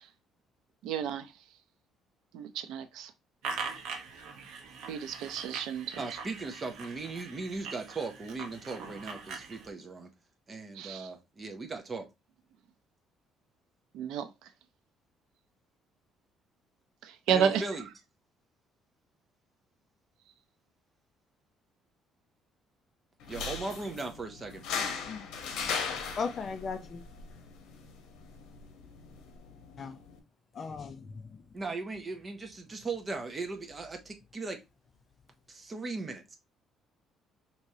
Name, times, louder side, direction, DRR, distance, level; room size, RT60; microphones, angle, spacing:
voice 1, 0.8-1.3 2.3-3.1 4.9-6.0 10.8-11.1 13.9-14.3 17.0-17.6, right 8 dB, 85° right, 0.5 m, -31 dB
sound 1, 3.4-9.7, right 5 dB, 70° right, 0.9 m, -42 dB
voice 2, 6.0-10.1 10.5-12.1 17.3-17.9 23.3-25.0 31.5-34.6 35.5-36.4, right 3 dB, 20° right, 0.6 m, -38 dB
sound 2, 23.2-30.2, left 6 dB, 80° left, 0.8 m, -39 dB
voice 3, 26.2-27.0 29.8-30.0 30.5-31.2, left 5 dB, 30° left, 0.5 m, -36 dB
4.8 x 3.0 x 2.7 m
cardioid pair, 175°, 0 cm